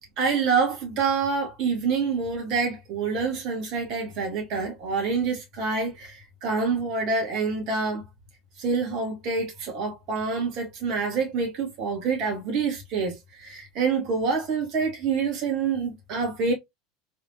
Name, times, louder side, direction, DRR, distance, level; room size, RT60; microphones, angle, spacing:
voice 1, 0.2-8.0 8.6-16.5, right 5 dB, 45° right, 1.6 m, -27 dB
3.5 x 3.3 x 2.6 m
figure-of-eight pair, 75°, 0 cm